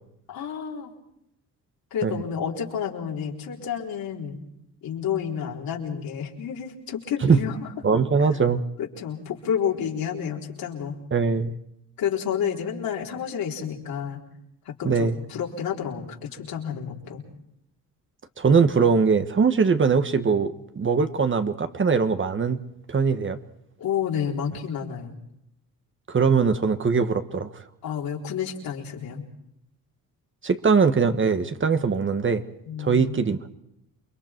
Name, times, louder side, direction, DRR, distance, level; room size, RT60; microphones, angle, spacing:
voice 1, 0.3-0.9 1.9-4.4 4.8-7.7 8.2-8.3 8.8-11.0 12.0-14.2 14.7-17.2 23.8-25.2 27.8-29.2 32.7-33.2, left 8 dB, 75° left, 4.2 m, -30 dB
voice 2, 7.8-8.6 11.1-11.5 14.8-15.2 18.4-22.6 22.9-23.4 26.1-27.5 30.4-32.4 32.8-33.4, right 5 dB, 35° right, 1.4 m, -21 dB
29.0 x 22.5 x 4.6 m
cardioid pair, 95°, 35 cm